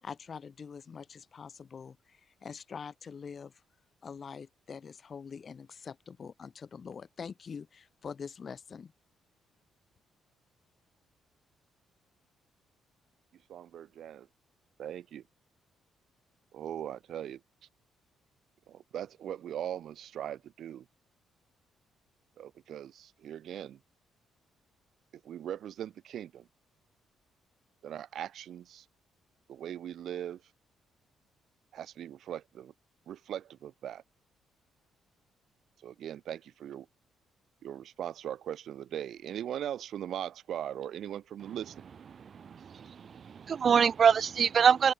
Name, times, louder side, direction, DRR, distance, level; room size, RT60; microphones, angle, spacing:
voice 1, 0.0-3.6 4.0-8.9, left 6 dB, 45° left, 3.0 m, -44 dB
voice 2, 13.5-14.3 14.8-15.2 16.5-17.4 18.7-20.8 22.4-23.8 25.2-26.5 27.8-28.8 29.5-30.4 31.7-32.7 33.1-34.0 35.8-36.9 37.6-41.7, right 10 dB, 70° right, 2.8 m, -40 dB
voice 3, 42.1-44.9, right 7 dB, 50° right, 0.9 m, -25 dB
cardioid pair, 90°, 0 cm